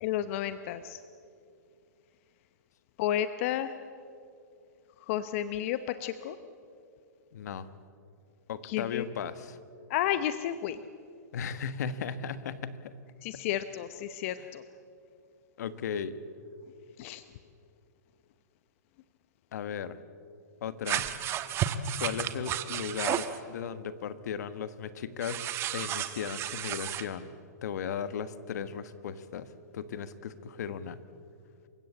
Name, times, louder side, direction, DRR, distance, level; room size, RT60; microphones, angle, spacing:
voice 1, 0.0-1.0 3.0-3.7 5.1-6.4 8.6-9.1 9.9-10.8 13.2-14.6 17.0-17.2, left 11 dB, 50° left, 12 dB, 0.9 m, -32 dB
voice 2, 7.3-7.7 8.5-9.6 11.3-12.9 15.6-16.2 19.5-20.0 20.6-21.1 22.0-27.3 27.6-31.0, left 7 dB, 70° left, 13 dB, 1.4 m, -36 dB
sound 1, 20.8-23.4 25.2-27.0, right 10 dB, 25° right, 1.2 m, -32 dB
28.0 x 16.0 x 8.6 m, 2.5 s
hypercardioid pair, 135°, 10 cm